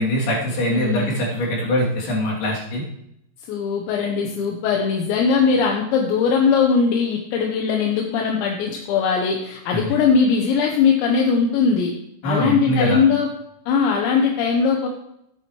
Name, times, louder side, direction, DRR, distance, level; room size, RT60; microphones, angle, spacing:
voice 1, 0.0-2.8 9.7-9.8 12.2-13.0, left 1 dB, 60° left, -4 dB, 4.8 m, -22 dB
voice 2, 0.7-1.1 3.5-11.9 12.2-13.3 13.7-14.9, left 5 dB, 80° left, 1 dB, 3.4 m, -20 dB
14.5 x 10.5 x 3.2 m, 0.78 s
omnidirectional pair, 5.2 m